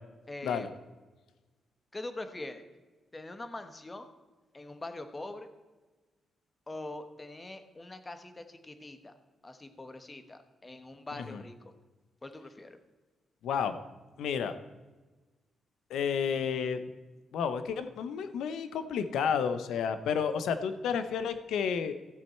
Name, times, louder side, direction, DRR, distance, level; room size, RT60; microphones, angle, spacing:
voice 1, 0.3-0.7 1.9-2.6 3.1-4.1 4.5-5.5 6.7-9.1 9.4-11.7 12.2-12.8, left 2 dB, 25° left, 9 dB, 1.2 m, -43 dB
voice 2, 13.4-13.7 14.2-14.5 15.9-16.8 17.3-21.9, left 7 dB, 85° left, 10 dB, 0.8 m, -31 dB
13.5 x 7.7 x 4.4 m, 1.2 s
cardioid pair, 75°, 0 cm